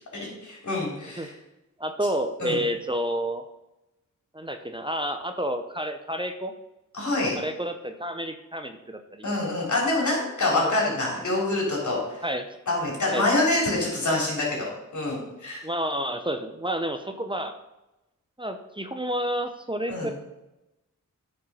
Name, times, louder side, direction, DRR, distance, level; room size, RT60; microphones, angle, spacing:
voice 1, 0.1-1.3 2.4-2.6 6.9-7.4 9.2-12.2 12.7-15.6 19.9-20.1, left 2 dB, 70° left, -3 dB, 3.6 m, -26 dB
voice 2, 1.8-3.4 4.3-6.5 7.4-9.3 10.5-10.7 12.2-12.5 13.1-13.3 15.6-17.5 18.4-20.1, equal, 15° right, 7 dB, 0.8 m, -30 dB
9.6 x 5.4 x 5.6 m, 0.95 s
cardioid pair, 60°, 31 cm